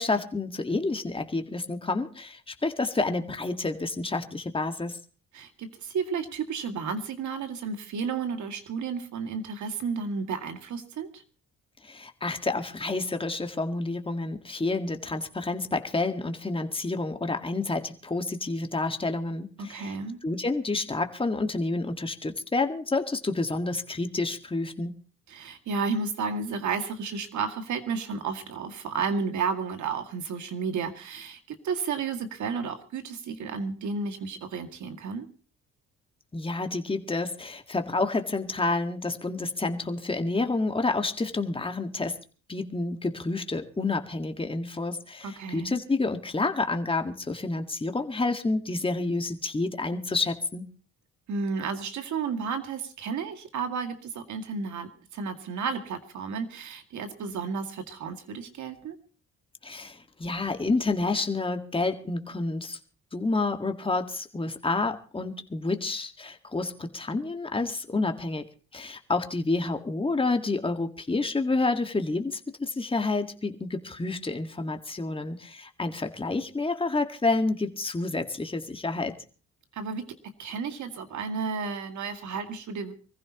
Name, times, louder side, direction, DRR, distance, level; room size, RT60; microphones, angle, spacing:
voice 1, 0.0-5.0 11.8-19.9 20.2-24.9 36.3-42.2 42.5-50.7 59.6-62.8 63.1-68.5 68.7-79.1, left 3 dB, 15° left, 6 dB, 1.7 m, -29 dB
voice 2, 5.3-11.2 19.6-20.2 25.3-35.3 45.2-45.8 51.3-59.0 79.7-80.1 80.4-82.9, right 5 dB, 70° right, 7 dB, 2.2 m, -32 dB
25.0 x 15.0 x 2.9 m, 0.36 s
cardioid pair, 90°, 30 cm